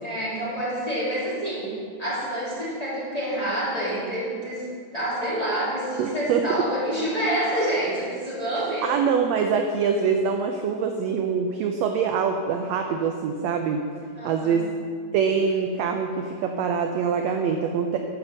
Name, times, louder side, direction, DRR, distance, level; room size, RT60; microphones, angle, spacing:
voice 1, 0.0-1.7 2.0-4.7 4.9-8.9 14.2-14.6, right 1 dB, 10° left, -9 dB, 2.6 m, -27 dB
voice 2, 6.0-6.4 8.6-13.8 14.2-14.7 15.1-18.0, right 6 dB, 80° right, 5 dB, 1.6 m, -24 dB
11.5 x 5.3 x 7.1 m, 2.2 s
omnidirectional pair, 3.6 m